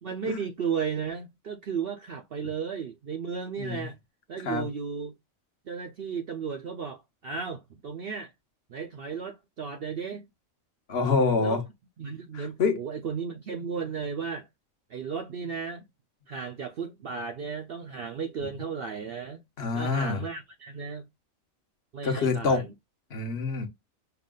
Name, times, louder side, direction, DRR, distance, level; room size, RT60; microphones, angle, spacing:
voice 1, 0.0-4.0 4.3-5.1 5.7-8.3 8.7-10.2 11.4-11.6 12.0-14.5 14.9-15.8 16.3-19.4 19.7-21.0 21.9-22.7, right 6 dB, 60° right, 0.6 m, -34 dB
voice 2, 10.9-11.6 12.3-12.8 19.6-20.2 22.0-22.6 23.1-23.7, left 4 dB, 50° left, 1.3 m, -26 dB
5.8 x 2.3 x 3.7 m
omnidirectional pair, 1.4 m